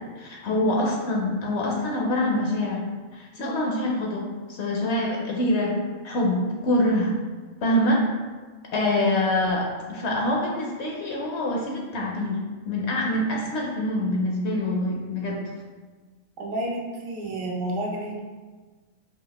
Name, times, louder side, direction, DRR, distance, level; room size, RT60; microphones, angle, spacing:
voice 1, 0.2-2.8 3.1-5.8 6.0-7.1 7.6-8.0 8.7-12.4 12.6-15.4, left 1 dB, 65° left, -1 dB, 0.8 m, -25 dB
voice 2, 16.4-18.2, right 1 dB, 70° right, -2 dB, 1.0 m, -30 dB
4.9 x 2.3 x 2.9 m, 1.4 s
omnidirectional pair, 1.4 m